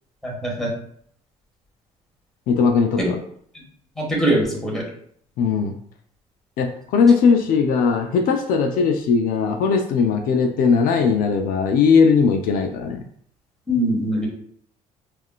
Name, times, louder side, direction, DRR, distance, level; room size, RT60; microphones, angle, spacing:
voice 1, 0.2-0.7 3.0-3.1 4.0-4.8 13.7-14.3, right 1 dB, 5° left, -4 dB, 1.3 m, -22 dB
voice 2, 2.5-3.2 5.4-5.8 6.6-13.0, left 5 dB, 70° left, 4 dB, 0.4 m, -18 dB
3.5 x 2.4 x 2.3 m, 0.63 s
supercardioid pair, 80°, 15 cm